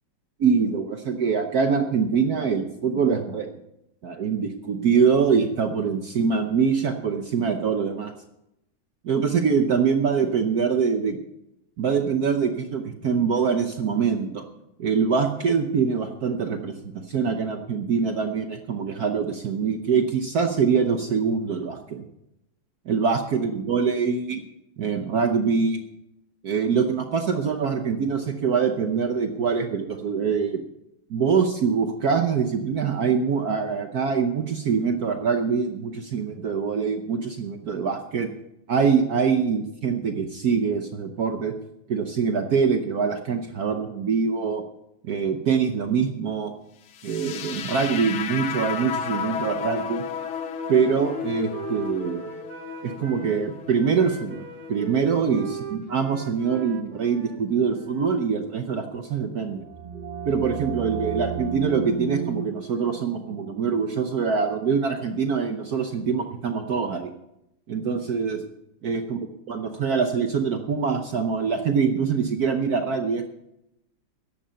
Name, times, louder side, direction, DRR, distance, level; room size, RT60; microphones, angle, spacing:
voice 1, 0.4-3.5 4.0-8.1 9.0-11.2 11.8-14.5 14.8-22.0 22.9-24.4 24.8-25.8 26.4-30.6 31.1-38.3 38.7-41.5 41.9-44.6 45.0-46.5 47.0-50.0 50.7-52.3 52.8-59.6 60.2-67.1 67.7-68.4 68.8-69.2 69.5-73.3, right 6 dB, 55° right, 6 dB, 1.1 m, -24 dB
sound 1, 46.9-55.0, left 8 dB, 80° left, 1.7 m, -33 dB
Wind instrument woodwind instrument, 49.6-53.4 53.8-58.3, right 7 dB, 80° right, 2.2 m, -40 dB
sound 2, 59.3-64.9, right 7 dB, 30° right, 0.8 m, -34 dB
14.0 x 10.5 x 5.6 m, 0.85 s
omnidirectional pair, 2.3 m